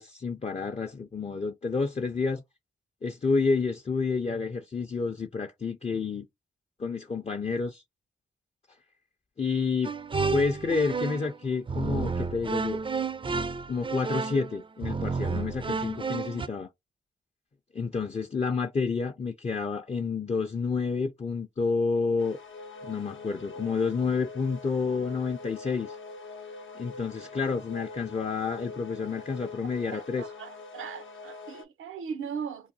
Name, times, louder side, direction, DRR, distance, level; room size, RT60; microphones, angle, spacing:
voice 1, 0.0-2.4 3.0-6.3 6.8-7.8 9.4-9.9 10.3-12.8 13.7-16.7 17.7-22.4 22.8-26.0 26.8-30.2, left 4 dB, 30° left, 0.5 m, -29 dB
sound 1, 9.8-11.3 11.7-16.5, right 4 dB, 25° right, 0.4 m, -31 dB
sound 2, 22.2-31.6, left 3 dB, 65° left, 0.7 m, -44 dB
voice 2, 29.9-32.7, right 6 dB, 75° right, 0.5 m, -38 dB
2.5 x 2.2 x 3.9 m
supercardioid pair, 45°, 21 cm